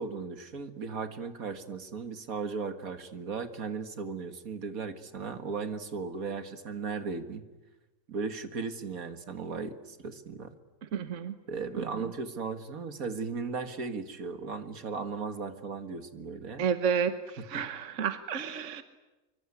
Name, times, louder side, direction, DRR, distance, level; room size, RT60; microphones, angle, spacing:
voice 1, 0.0-7.4 8.1-10.5 11.5-16.6 17.5-17.6, right 5 dB, 75° right, 8 dB, 2.1 m, -36 dB
voice 2, 10.9-11.3 11.8-11.9 16.6-18.8, right 7 dB, 60° right, 9 dB, 1.4 m, -31 dB
25.0 x 24.5 x 9.7 m, 1.1 s
omnidirectional pair, 1.5 m